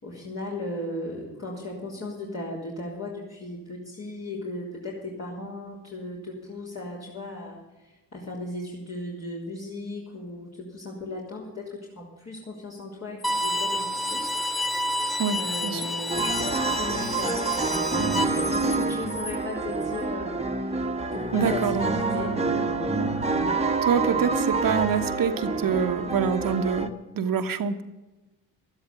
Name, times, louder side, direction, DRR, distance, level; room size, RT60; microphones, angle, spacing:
voice 1, 0.0-14.4 15.3-23.7, left 2 dB, 40° left, -4 dB, 3.7 m, -36 dB
sound 1, 13.2-20.0, left 5 dB, 80° left, 1.8 m, -41 dB
Bowed string instrument, 13.2-18.2, left 1 dB, ahead, 0.9 m, -29 dB
voice 2, 15.2-15.9 21.3-21.9 23.8-26.9 27.1-27.8, right 6 dB, 55° right, 9 dB, 1.2 m, -25 dB
sound 2, 16.1-26.9, right 3 dB, 15° right, 1.5 m, -27 dB
12.5 x 11.5 x 7.0 m, 1.1 s
hypercardioid pair, 55°, 40 cm